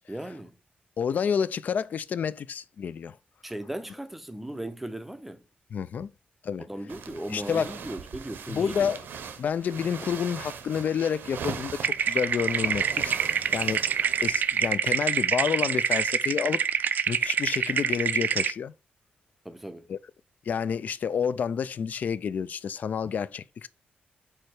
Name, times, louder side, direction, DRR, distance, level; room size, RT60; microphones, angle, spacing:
voice 1, 0.1-0.6 3.4-5.4 6.6-8.9 19.4-19.9, right 1 dB, 5° right, 0.5 m, -37 dB
voice 2, 1.0-3.2 5.7-6.1 6.4-6.6 7.3-7.7 8.5-9.0 9.4-13.1 13.5-13.9 14.2-16.6 17.1-18.7 19.9-20.0 20.5-23.7, left 7 dB, 50° left, 0.3 m, -29 dB
sound 1, 6.9-14.7, right 7 dB, 80° right, 0.7 m, -40 dB
sound 2, 11.8-18.5, right 7 dB, 60° right, 0.4 m, -26 dB
4.8 x 4.3 x 4.6 m
wide cardioid pair, 180°, 3 cm